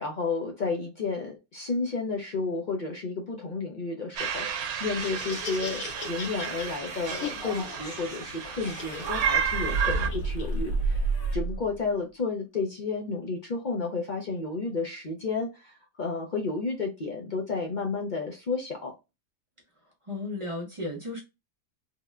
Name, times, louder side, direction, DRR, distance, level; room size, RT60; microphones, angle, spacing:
voice 1, 0.0-11.0 11.3-19.0, left 4 dB, 60° left, 0.5 m, -32 dB
sound 1, 4.2-10.1, right 7 dB, 85° right, 1.1 m, -32 dB
Laughter, 4.8-11.3, left 4 dB, 85° left, 1.3 m, -41 dB
sound 2, 9.0-11.8, right 3 dB, 65° right, 0.7 m, -29 dB
voice 2, 20.0-21.2, left 2 dB, 40° right, 0.4 m, -34 dB
3.6 x 2.1 x 2.2 m
omnidirectional pair, 1.5 m